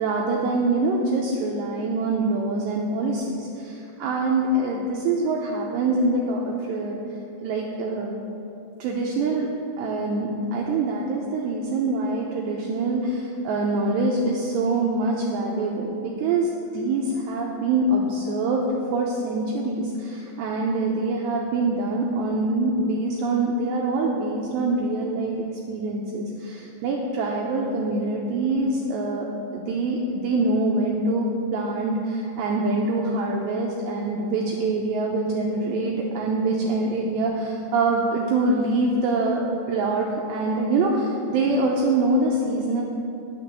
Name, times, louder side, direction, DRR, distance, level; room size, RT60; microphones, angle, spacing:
voice 1, 0.0-7.0 7.4-8.2 8.8-9.5 9.8-25.3 25.7-42.8, right 2 dB, 85° right, -2 dB, 2.5 m, -24 dB
10.5 x 6.7 x 7.3 m, 2.7 s
omnidirectional pair, 5.8 m